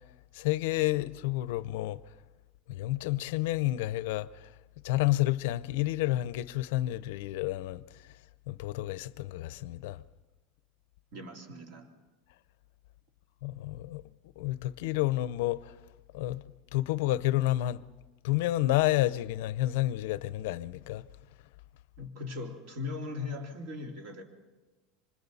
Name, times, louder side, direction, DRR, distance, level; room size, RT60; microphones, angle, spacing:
voice 1, 0.3-2.0 2.7-4.5 4.8-7.8 8.5-10.0 13.4-14.0 14.4-15.8 16.1-16.4 16.7-17.8 18.2-21.1, left 16 dB, 65° left, 0.6 m, -30 dB
voice 2, 11.1-11.9 22.0-24.2, left 3 dB, 55° right, 2.7 m, -39 dB
27.5 x 25.5 x 4.1 m
supercardioid pair, 175°, 0 cm